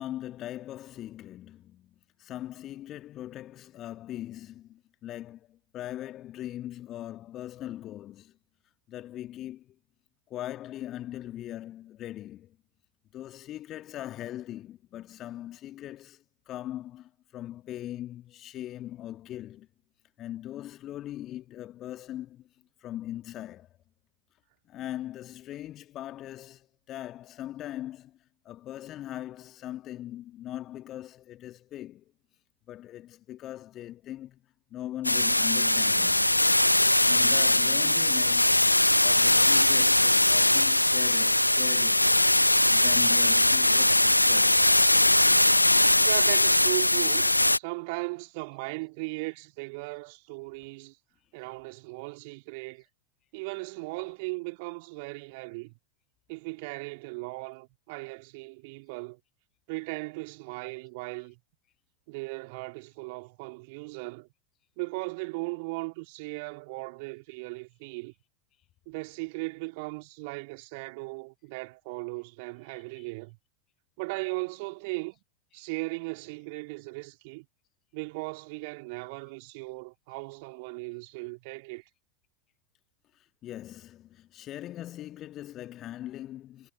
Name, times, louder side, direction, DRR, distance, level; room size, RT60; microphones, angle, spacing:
voice 1, 0.0-8.4 8.9-9.8 10.3-12.6 13.1-19.7 20.2-22.5 22.8-23.7 24.7-28.2 28.5-32.1 32.7-34.4 34.7-36.5 37.1-38.6 39.0-42.2 42.7-44.6 72.7-73.1 83.1-86.7, left 13 dB, 30° left, 1.8 m, -40 dB
sound 1, 35.0-47.6, left 1 dB, 85° left, 0.4 m, -21 dB
voice 2, 46.0-51.0 51.3-52.9 53.3-55.8 56.3-59.2 59.7-61.4 62.1-64.3 64.8-68.1 68.9-73.4 74.0-75.2 75.5-77.5 77.9-81.8, right 28 dB, 45° right, 3.0 m, -37 dB
figure-of-eight pair, 90°, 0 cm